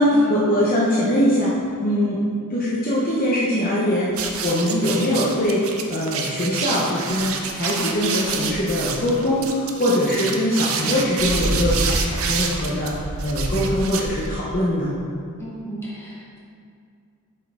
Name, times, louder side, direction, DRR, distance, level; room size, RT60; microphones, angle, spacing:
voice 1, 0.0-1.5 1.8-2.2 2.5-4.1 4.4-14.9, left 1 dB, 40° left, -6 dB, 0.8 m, -22 dB
sound 1, 4.1-14.6, right 4 dB, 65° right, 0.6 m, -27 dB
voice 2, 15.4-16.4, right 1 dB, 10° left, -7 dB, 1.7 m, -34 dB
7.3 x 5.5 x 3.6 m, 2.3 s
head